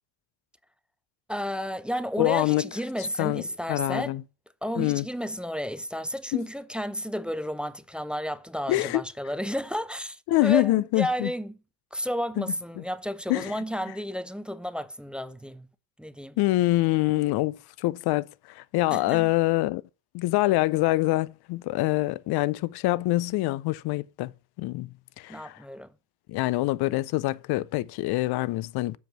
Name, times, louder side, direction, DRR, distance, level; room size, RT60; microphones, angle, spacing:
voice 1, 1.3-4.2 4.6-11.6 11.9-15.7 16.0-16.4 18.9-19.3 25.3-25.9, equal, ahead, 0.3 m, -32 dB
voice 2, 2.2-2.7 3.2-3.4 3.7-4.2 4.8-5.0 6.3-6.5 8.7-9.0 10.3-11.3 12.4-12.5 13.3-13.5 16.4-19.8 20.1-24.3 24.6-25.6 26.3-29.0, left 18 dB, 55° left, 0.6 m, -25 dB
7.2 x 5.1 x 5.9 m
supercardioid pair, 90°, 46 cm